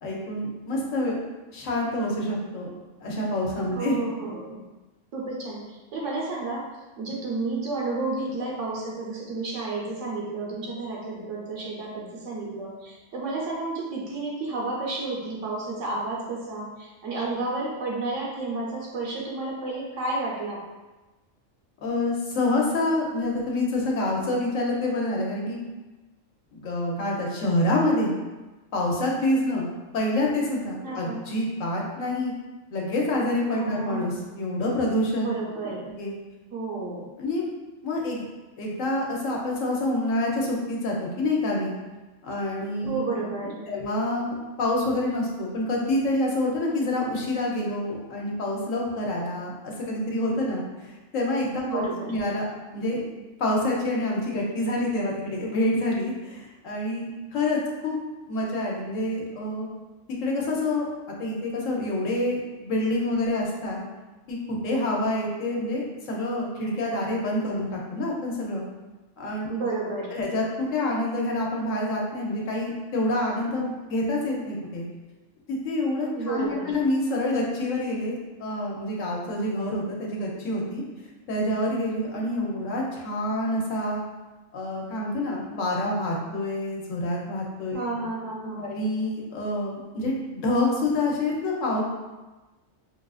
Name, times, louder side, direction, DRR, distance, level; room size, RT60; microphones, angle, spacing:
voice 1, 0.0-1.2 1.5-2.7 3.0-4.0 21.8-25.6 26.5-28.1 28.7-29.7 29.9-32.3 32.7-35.3 35.8-36.1 37.2-37.4 37.8-38.2 38.6-41.7 42.2-43.0 43.4-52.5 52.7-53.0 53.4-57.9 58.3-59.7 60.2-60.9 61.2-63.8 64.3-68.6 69.2-69.5 70.1-74.9 75.5-80.8 81.3-84.0 84.5-87.9 88.6-91.8, left 1 dB, 85° left, -2 dB, 1.1 m, -27 dB
voice 2, 3.7-4.6 5.1-6.7 7.0-20.6 30.8-31.2 33.5-34.1 35.2-35.8 36.5-37.1 42.9-43.8 51.6-52.1 69.5-70.1 76.2-76.8 87.7-88.7, right 3 dB, 75° right, -3 dB, 1.2 m, -31 dB
5.4 x 2.4 x 2.4 m, 1.2 s
omnidirectional pair, 1.3 m